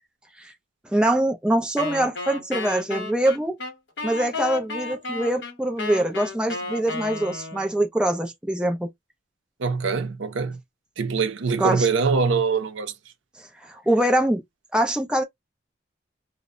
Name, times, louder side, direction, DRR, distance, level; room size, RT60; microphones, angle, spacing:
voice 1, 0.9-3.6 4.0-8.9 11.6-11.9 13.6-14.4 14.7-15.2, right 1 dB, 5° right, 0.4 m, -23 dB
Wind instrument woodwind instrument, 1.8-7.8, left 4 dB, 70° left, 0.9 m, -33 dB
voice 2, 9.6-10.6 11.0-12.9, right 5 dB, 80° right, 0.5 m, -23 dB
2.1 x 2.0 x 3.5 m
head